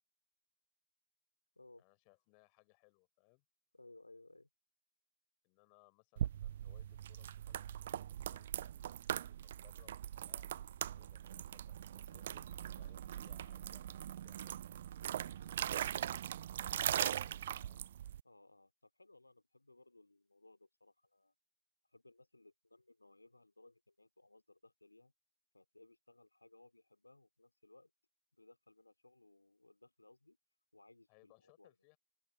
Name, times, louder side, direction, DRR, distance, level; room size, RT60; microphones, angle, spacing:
voice 1, 1.8-3.4 5.4-8.0 8.3-14.7 16.6-17.9 31.1-32.0, left 40 dB or more, 45° left, 5.0 m, -69 dB
voice 2, 3.7-4.5 15.1-15.6 18.2-21.3 21.9-25.1 25.5-27.9 28.3-30.4 30.7-31.7, left 2 dB, 85° left, 3.6 m, -63 dB
sound 1, 6.2-18.2, right 11 dB, 60° right, 0.4 m, -41 dB
open air
figure-of-eight pair, 90°, 0 cm